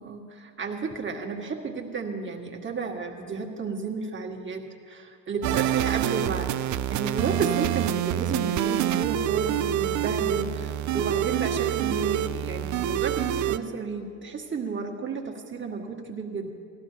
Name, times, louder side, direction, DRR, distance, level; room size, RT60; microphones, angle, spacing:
voice 1, 0.0-16.5, right 4 dB, 25° right, 0 dB, 1.7 m, -32 dB
sound 1, 5.4-13.6, right 11 dB, 40° right, 0.4 m, -26 dB
18.0 x 13.5 x 2.8 m, 2.4 s
supercardioid pair, 80°, 46 cm